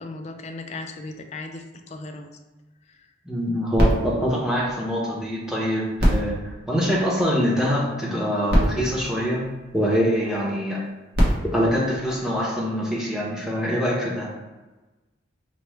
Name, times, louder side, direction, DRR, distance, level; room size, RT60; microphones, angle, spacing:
voice 1, 0.0-2.3 2.9-3.1 4.4-4.5 10.3-10.5 12.1-12.2, left 3 dB, 35° left, 5 dB, 0.3 m, -37 dB
voice 2, 3.2-9.5 9.7-10.8 11.5-14.3, equal, 5° right, -4 dB, 0.6 m, -24 dB
sound 1, 3.7-5.4 5.9-7.5 8.2-8.3 8.5-10.1 10.9-12.7 13.4-13.5, equal, 55° right, 0.9 m, -25 dB
4.4 x 2.1 x 3.1 m, 1.1 s
head